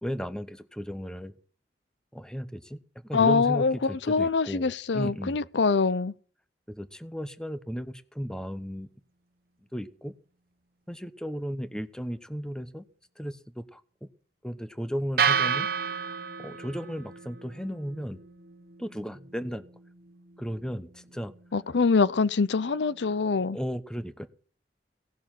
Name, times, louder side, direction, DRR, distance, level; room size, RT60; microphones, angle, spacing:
voice 1, 0.0-1.3 2.1-2.8 3.1-5.5 6.7-8.9 9.7-10.1 10.9-12.8 13.2-14.1 14.4-15.7 16.4-18.2 18.8-19.6 20.4-21.3 23.5-24.3, equal, 5° left, 0.9 m, -35 dB
voice 2, 3.1-6.1 21.5-23.6, left 4 dB, 85° left, 0.6 m, -24 dB
sound 1, 15.2-23.3, right 6 dB, 55° right, 0.9 m, -33 dB
17.5 x 6.7 x 9.1 m
head